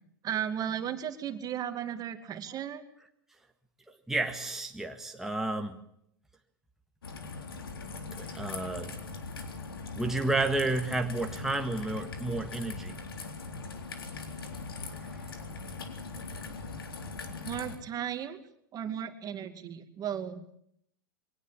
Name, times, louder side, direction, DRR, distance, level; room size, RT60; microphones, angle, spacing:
voice 1, 0.2-2.8 17.3-18.4 18.7-20.4, right 9 dB, 30° right, 9 dB, 2.4 m, -35 dB
voice 2, 3.9-5.8 8.1-8.9 9.9-13.0 14.9-15.3, right 2 dB, 5° right, 3 dB, 1.7 m, -32 dB
Raindrop / Trickle dribble, 7.0-17.8, left 4 dB, 85° left, 3.7 m, -40 dB
23.5 x 18.0 x 8.5 m, 0.72 s
hypercardioid pair, 105°, 12 cm